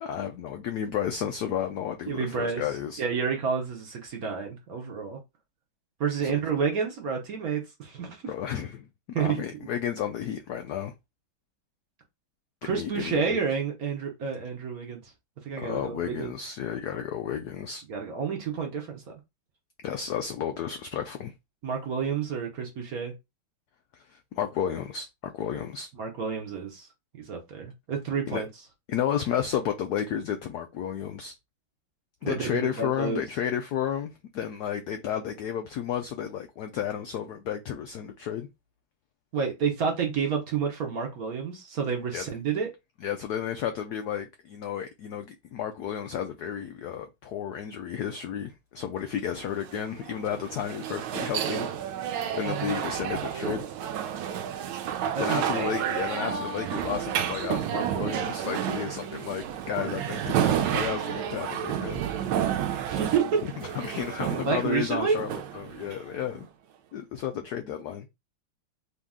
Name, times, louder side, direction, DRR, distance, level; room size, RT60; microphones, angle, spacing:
voice 1, 0.0-3.0 6.2-6.3 8.3-8.9 9.2-10.9 12.6-13.4 15.6-17.8 19.8-21.3 24.0-25.9 28.3-28.4 28.9-31.3 32.2-38.5 42.1-42.2 43.0-51.7 52.3-53.6 55.2-62.0 63.8-66.5 66.9-68.1, left 9 dB, 90° left, 0.8 m, -32 dB
voice 2, 2.1-2.6 3.0-5.2 6.0-8.2 9.1-9.6 12.6-15.1 15.4-16.3 17.9-19.1 21.6-23.1 26.0-26.9 27.2-28.5 32.2-33.2 39.3-42.7 52.4-52.8 55.1-55.7 62.8-63.5 64.4-65.2, right 6 dB, 55° right, 1.2 m, -29 dB
sound 1, 49.4-66.4, right 9 dB, 75° right, 1.4 m, -31 dB
4.0 x 2.9 x 3.6 m
omnidirectional pair, 2.3 m